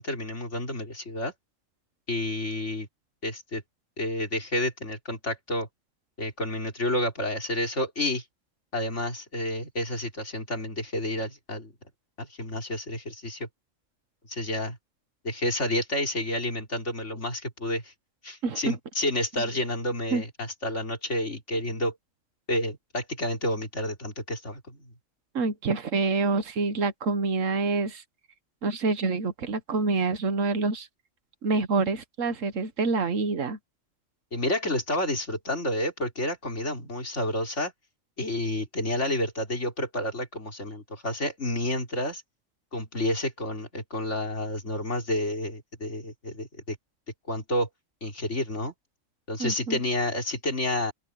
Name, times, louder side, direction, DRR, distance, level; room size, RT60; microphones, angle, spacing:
voice 1, 0.0-1.3 2.1-2.9 3.2-3.6 4.0-5.7 6.2-8.2 8.7-11.7 12.2-13.5 14.3-14.8 15.2-17.9 18.2-21.9 22.5-24.9 34.3-37.7 38.2-42.2 42.7-46.8 47.3-47.7 48.0-48.7 49.3-50.9, left 1 dB, 60° left, 4.7 m, -30 dB
voice 2, 18.4-18.8 20.1-20.2 25.3-28.0 28.6-30.9 31.4-33.6 49.4-49.8, right 3 dB, 75° right, 1.6 m, -27 dB
open air
omnidirectional pair, 1.4 m